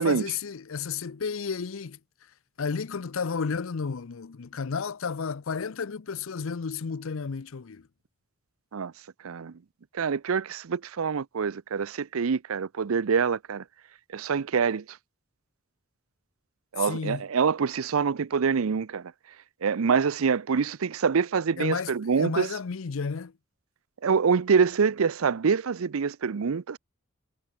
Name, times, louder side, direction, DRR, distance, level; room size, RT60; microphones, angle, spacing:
voice 1, 0.0-2.0 2.6-7.9 16.8-17.3 21.6-23.3, left 5 dB, 75° left, 0.6 m, -32 dB
voice 2, 9.9-13.6 14.1-14.8 16.7-19.1 19.6-22.5 24.0-26.8, right 6 dB, 85° right, 0.5 m, -25 dB
head